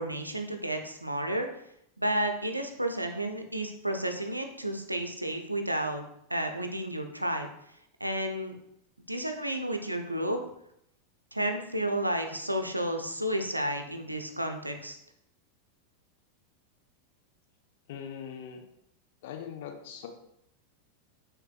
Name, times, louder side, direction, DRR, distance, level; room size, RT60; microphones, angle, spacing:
voice 1, 0.0-1.5 2.0-6.0 6.3-7.5 8.0-8.6 9.1-10.4 11.3-15.0, right 1 dB, 85° right, 6 dB, 0.5 m, -31 dB
voice 2, 17.9-18.6 19.2-20.1, left 8 dB, 55° left, 4 dB, 0.7 m, -41 dB
5.6 x 3.7 x 2.4 m, 0.76 s
figure-of-eight pair, 90°, 0 cm